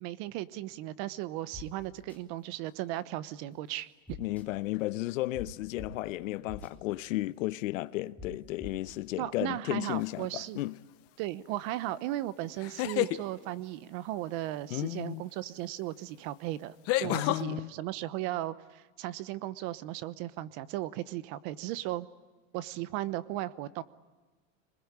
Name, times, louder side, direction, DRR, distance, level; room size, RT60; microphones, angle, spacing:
voice 1, 0.0-4.2 9.2-10.6 11.2-22.1 22.5-23.8, right 15 dB, 45° right, 1.0 m, -36 dB
sound 1, 1.5-1.6 2.1-2.2 4.1-4.4 5.3-5.4 5.8-5.9 6.5-6.7 8.2-8.3 8.6-9.0, left 5 dB, 5° left, 2.8 m, -43 dB
voice 2, 4.2-10.8 14.7-15.2 17.0-17.7, left 17 dB, 75° left, 1.0 m, -34 dB
sound 2, 10.0-10.4 12.6-13.2 15.5-15.6 16.9-17.4, left 16 dB, 35° left, 0.9 m, -29 dB
27.5 x 21.0 x 9.9 m
supercardioid pair, 150°, 40 cm